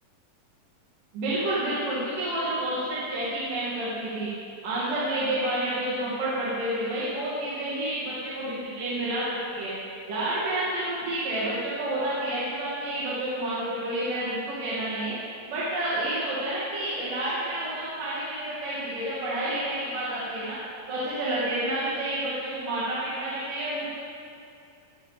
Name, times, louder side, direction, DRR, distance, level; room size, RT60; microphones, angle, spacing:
voice 1, 1.1-4.3 4.6-9.2 9.5-9.7 10.1-15.1 15.5-20.6 20.9-23.9, right 1 dB, 65° right, -9 dB, 4.0 m, -29 dB
20.0 x 11.0 x 5.2 m, 2.6 s
omnidirectional pair, 4.1 m